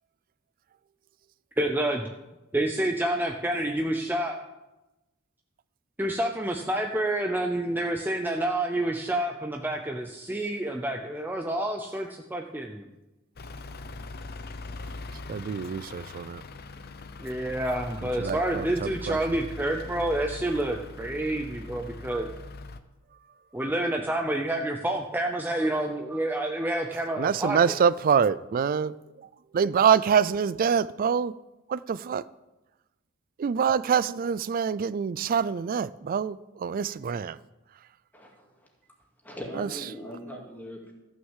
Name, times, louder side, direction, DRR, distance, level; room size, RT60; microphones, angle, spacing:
voice 1, 1.6-2.1 2.5-4.4 6.0-12.9 17.2-22.3 23.5-27.6, right 1 dB, 10° right, 0.6 m, -28 dB
Truck / Idling, 13.4-22.8, left 2 dB, 45° left, 0.7 m, -41 dB
voice 2, 15.3-16.4 18.2-19.2 27.2-28.9 29.5-31.3 31.7-32.2 33.4-37.4 39.6-39.7, right 7 dB, 40° right, 0.3 m, -25 dB
voice 3, 38.1-38.7 39.2-40.9, equal, 10° left, 2.2 m, -40 dB
14.5 x 6.3 x 7.3 m
head